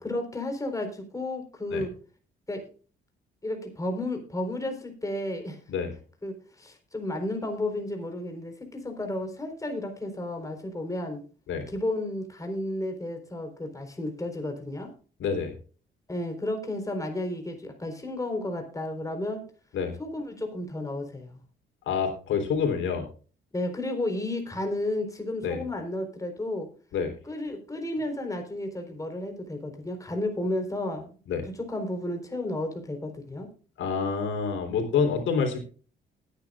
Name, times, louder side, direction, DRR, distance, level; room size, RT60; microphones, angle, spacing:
voice 1, 0.0-1.9 2.5-2.7 3.4-5.6 6.2-11.2 11.7-14.9 16.1-19.4 20.0-21.4 23.5-26.7 27.2-31.2 31.6-33.5, left 1 dB, 15° left, 4 dB, 4.2 m, -32 dB
voice 2, 15.2-15.5 19.7-19.9 21.9-23.1 25.4-25.6 26.9-27.1 31.3-31.4 33.8-35.6, left 6 dB, 75° left, 4 dB, 3.8 m, -27 dB
19.0 x 9.9 x 2.5 m, 0.39 s
cardioid pair, 90°, 20 cm